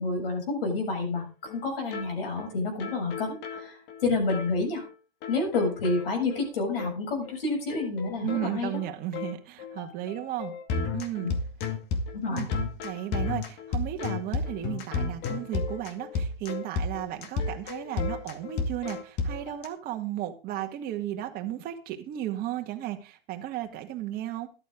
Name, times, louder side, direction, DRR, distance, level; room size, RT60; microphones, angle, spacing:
voice 1, 0.0-4.8 5.3-8.7 11.2-11.3 12.1-12.4, left 3 dB, 70° left, 2 dB, 7.3 m, -29 dB
sound 1, 1.2-1.3 1.5-1.6 1.9-2.1 2.4-2.5 2.8-4.5 4.8-4.9 5.2-6.5 6.8-7.0 7.2-7.4 7.7-19.7, left 4 dB, 35° left, 2.2 m, -33 dB
voice 2, 8.2-10.5 10.9-11.3 12.3-12.5 12.8-24.5, right 13 dB, 30° right, 5 dB, 2.0 m, -34 dB
13.0 x 12.0 x 3.8 m, 0.33 s
hypercardioid pair, 130°, 30 cm